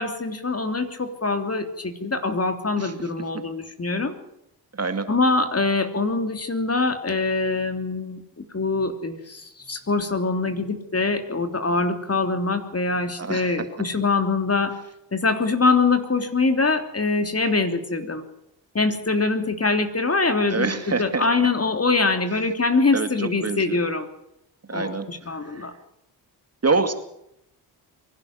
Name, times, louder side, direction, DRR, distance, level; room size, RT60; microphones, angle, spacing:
voice 1, 0.0-4.1 5.1-14.8 15.1-18.2 18.7-24.1 24.7-25.7, left 3 dB, 30° left, 7 dB, 3.2 m, -24 dB
voice 2, 2.8-3.1 3.3-3.4 4.7-5.1 13.2-13.6 20.5-21.5 22.9-23.8 24.7-25.7 26.6-26.9, right 4 dB, 30° right, 8 dB, 2.3 m, -26 dB
24.0 x 11.5 x 9.3 m, 0.81 s
supercardioid pair, 55°, 48 cm